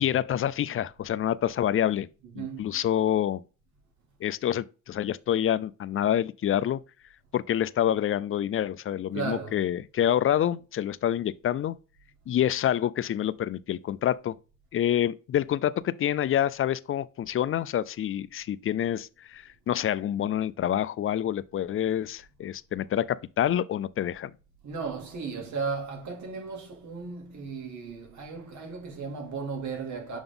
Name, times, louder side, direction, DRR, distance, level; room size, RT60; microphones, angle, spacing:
voice 1, 0.0-2.1 2.4-3.4 4.2-6.8 7.3-11.8 12.3-14.3 14.7-24.3, left 10 dB, 45° left, 0.4 m, -27 dB
voice 2, 2.3-2.8 9.1-9.6 24.6-30.2, right 5 dB, 70° right, 2.5 m, -35 dB
7.0 x 3.7 x 3.7 m
cardioid pair, 90°, 30 cm